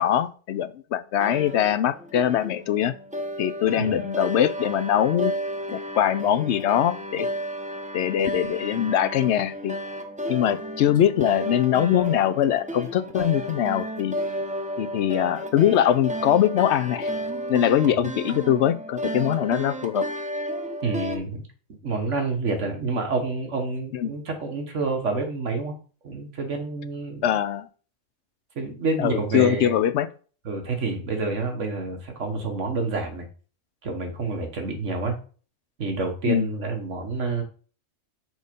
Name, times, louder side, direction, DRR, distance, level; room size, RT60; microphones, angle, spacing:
voice 1, 0.0-2.9 3.4-5.3 5.7-7.3 7.9-9.8 10.3-14.1 14.8-17.1 17.5-20.0 23.9-24.1 27.2-27.7 29.0-30.1 36.3-36.5, left 10 dB, 65° left, 0.8 m, -22 dB
Veena Recording, 1.2-21.2, equal, 10° right, 0.4 m, -32 dB
voice 2, 20.8-21.4 21.8-25.7 26.0-27.3 28.6-29.8 30.5-33.3 33.8-35.2 35.8-37.4, right 3 dB, 65° right, 1.7 m, -28 dB
6.3 x 4.0 x 5.3 m
omnidirectional pair, 1.4 m